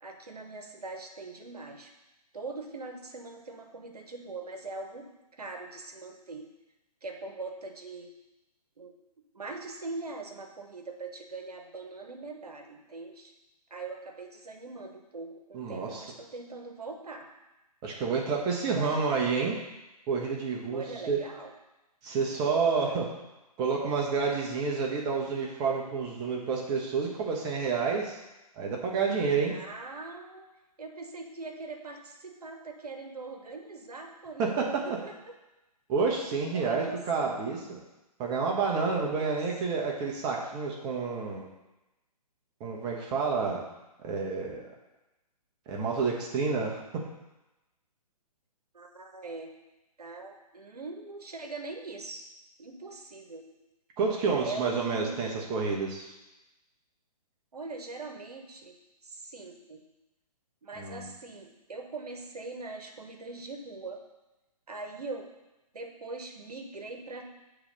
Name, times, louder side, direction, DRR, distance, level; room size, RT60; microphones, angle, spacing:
voice 1, 0.0-1.9 2.3-5.1 5.3-6.5 7.0-8.1 8.8-8.9 9.3-13.3 13.7-17.3 18.7-19.0 20.7-21.5 29.5-30.4 30.8-35.3 36.5-37.4 39.2-39.4 48.7-49.5 50.0-52.2 52.6-53.5 54.4-55.2 57.5-58.7 59.0-59.8 60.6-64.0 64.7-65.3 65.7-67.2, right 3 dB, 75° right, 4 dB, 1.1 m, -41 dB
voice 2, 15.5-16.1 17.8-19.6 20.1-21.2 22.0-23.1 23.6-28.2 28.5-29.5 34.4-34.8 35.9-37.8 38.2-41.5 42.6-43.6 44.0-44.6 45.7-46.8 54.0-56.1 60.7-61.1, right 5 dB, 20° right, -1 dB, 1.1 m, -29 dB
7.3 x 3.4 x 5.2 m, 1.0 s
figure-of-eight pair, 130°, 20 cm